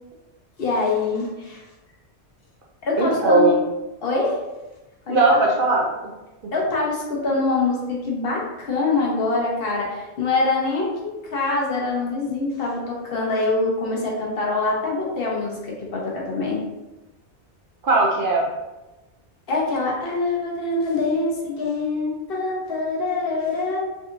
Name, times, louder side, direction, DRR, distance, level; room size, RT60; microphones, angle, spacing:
voice 1, 0.6-1.6 2.8-3.5 4.0-4.4 5.1-5.4 6.5-16.6 19.5-23.8, left 3 dB, 60° left, -3 dB, 0.9 m, -24 dB
voice 2, 3.0-3.6 5.1-5.9 17.8-18.4, right 2 dB, 60° right, -2 dB, 0.6 m, -18 dB
3.6 x 2.6 x 2.4 m, 1.1 s
omnidirectional pair, 1.2 m